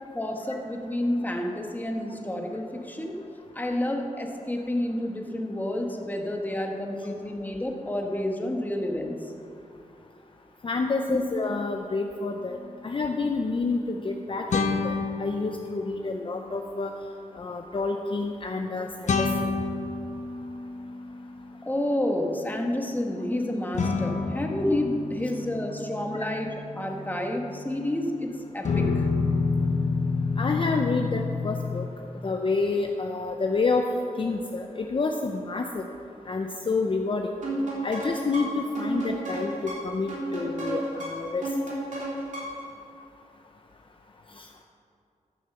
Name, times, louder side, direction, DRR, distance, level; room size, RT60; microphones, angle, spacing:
voice 1, 0.1-3.2 3.5-9.3 11.1-11.2 21.6-29.1, left 1 dB, 15° left, 2 dB, 1.2 m, -29 dB
voice 2, 10.6-12.6 12.8-16.9 17.4-19.3 26.1-26.3 30.4-31.9 32.2-33.8 34.2-35.9 36.3-37.3 37.8-41.5 44.4-44.5, left 3 dB, 40° left, 3 dB, 0.6 m, -28 dB
sound 1, 12.5-12.7 14.5-16.2 19.1-21.5 23.7-28.1 28.6-31.9, left 4 dB, 65° left, 0.9 m, -29 dB
sound 2, 37.4-42.7, right 1 dB, 70° right, 3.3 m, -32 dB
12.5 x 6.6 x 6.8 m, 2.6 s
wide cardioid pair, 125°, 13 cm